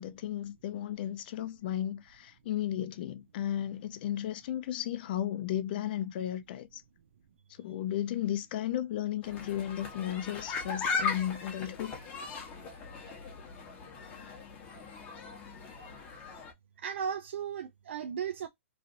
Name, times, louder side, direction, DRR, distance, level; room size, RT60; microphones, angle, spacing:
voice 1, 0.0-6.8 7.6-12.0, left 11 dB, 45° left, 0.5 m, -34 dB
sound 1, 9.2-16.5, left 4 dB, 25° left, 0.9 m, -38 dB
voice 2, 16.8-18.5, right 7 dB, 65° right, 0.4 m, -35 dB
3.1 x 2.5 x 2.6 m
hypercardioid pair, 150°, 7 cm